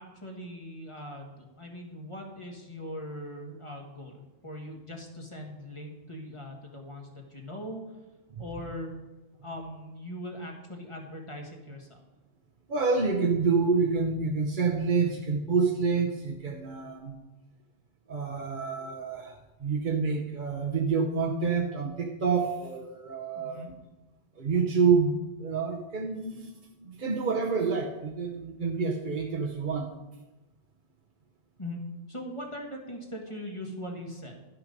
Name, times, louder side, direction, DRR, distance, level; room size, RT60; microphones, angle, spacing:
voice 1, 0.0-7.9 8.4-8.9 9.4-12.0 23.3-23.7 31.6-31.8 32.1-34.4, left 1 dB, 30° left, 1 dB, 1.4 m, -40 dB
voice 2, 12.7-17.2 18.1-23.6 24.4-26.5 26.8-29.9, right 5 dB, 50° right, 0 dB, 1.0 m, -28 dB
11.5 x 5.9 x 5.2 m, 1.1 s
omnidirectional pair, 1.1 m